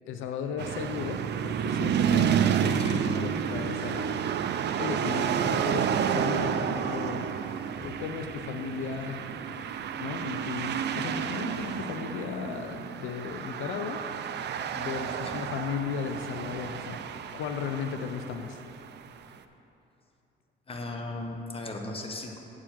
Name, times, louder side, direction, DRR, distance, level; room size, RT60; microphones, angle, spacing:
voice 1, 0.1-7.3 7.8-9.4 10.0-14.0 14.7-17.0 17.3-18.6, left 6 dB, 90° left, 6 dB, 0.6 m, -35 dB
sound 1, 0.6-19.0, right 8 dB, 60° right, 0.5 m, -30 dB
voice 2, 20.7-22.4, left 2 dB, 30° left, 2 dB, 1.1 m, -37 dB
8.1 x 4.9 x 7.4 m, 2.8 s
cardioid pair, 90°, 20 cm